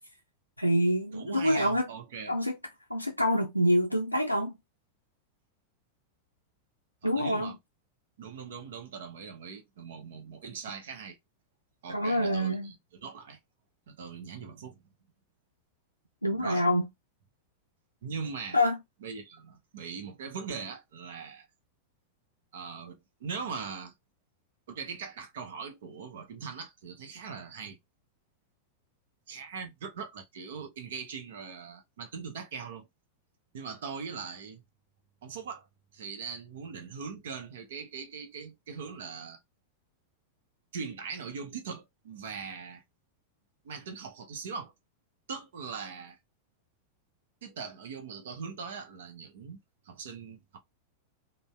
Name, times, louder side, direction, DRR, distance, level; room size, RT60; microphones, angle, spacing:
voice 1, 0.6-1.9 2.3-2.6 2.9-4.5 7.0-7.5 11.9-12.7 16.2-16.9 18.5-18.8, equal, 90° left, 0.4 m, -26 dB
voice 2, 1.1-2.3 7.0-7.6 8.2-11.2 11.8-12.8 13.0-13.4 13.9-14.8 16.3-16.7 18.0-18.6 19.0-21.5 22.5-23.9 24.7-27.8 29.3-32.9 33.5-34.6 35.2-35.7 35.9-39.4 40.7-42.8 43.6-44.7 45.3-46.2 47.4-49.6 49.8-50.6, right 5 dB, 60° right, 0.7 m, -40 dB
2.6 x 2.1 x 3.2 m
figure-of-eight pair, 90°, 0 cm